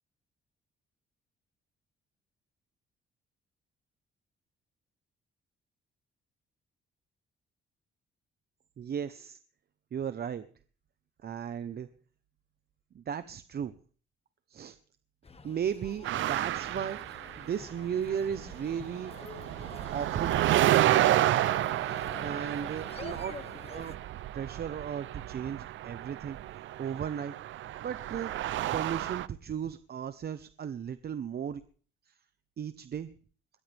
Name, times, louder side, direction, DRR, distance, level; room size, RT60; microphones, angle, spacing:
voice 1, 8.8-9.4 9.9-10.5 11.2-11.9 12.9-13.7 14.5-14.8 15.4-17.0 17.4-19.1 19.9-20.3 22.2-23.4 23.7-23.9 24.3-26.4 26.8-27.3 27.8-28.3 28.7-31.6 32.1-32.2 32.6-33.1, right 8 dB, 55° right, 12 dB, 1.1 m, -35 dB
sound 1, 15.2-24.0, left 4 dB, 30° left, 1.7 m, -48 dB
sound 2, 16.0-17.9 18.1-29.3, right 13 dB, 75° right, 0.7 m, -30 dB
22.0 x 17.0 x 3.6 m, 0.44 s
cardioid pair, 90°, 20 cm